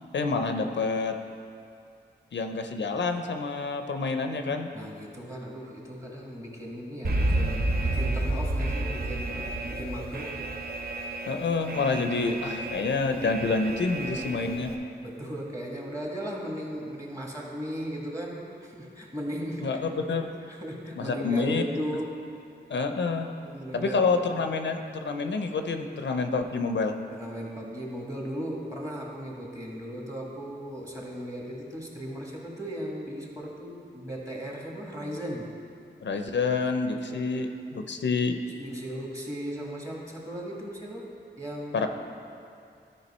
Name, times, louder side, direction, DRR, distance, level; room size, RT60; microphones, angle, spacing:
voice 1, 0.1-1.1 2.3-4.7 11.3-14.7 19.6-20.2 21.0-21.6 22.7-23.3 23.7-26.9 36.0-38.3 41.7-41.9, left 4 dB, 75° left, 6 dB, 0.5 m, -28 dB
voice 2, 4.7-10.4 15.0-22.4 23.4-24.0 27.1-35.5 36.9-37.5 38.4-41.9, equal, 15° right, -2 dB, 1.5 m, -37 dB
Alarm, 7.0-14.7, right 1 dB, 55° right, 0.8 m, -31 dB
12.0 x 4.8 x 4.2 m, 2.4 s
wide cardioid pair, 65°, 19 cm